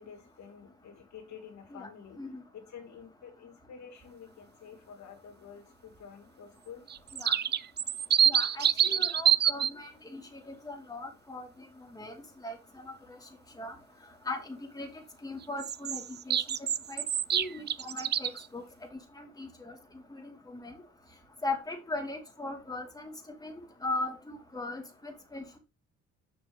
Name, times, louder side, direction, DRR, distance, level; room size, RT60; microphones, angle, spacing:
voice 1, 0.0-2.2 2.5-6.8, left 7 dB, 65° left, 3 dB, 2.6 m, -49 dB
sound 1, 6.9-9.7 15.6-18.5, right 9 dB, 35° right, 0.4 m, -26 dB
voice 2, 8.2-11.5 11.8-12.1 12.4-12.6 12.8-13.2 13.6-13.8 14.2-16.4 16.9-17.0 17.3-18.6 19.1-19.8 20.1-20.8 21.4-23.1 23.4-23.5 23.8-25.6, left 2 dB, 10° left, 1 dB, 2.6 m, -39 dB
6.5 x 6.2 x 3.6 m, 0.28 s
cardioid pair, 90°, 30 cm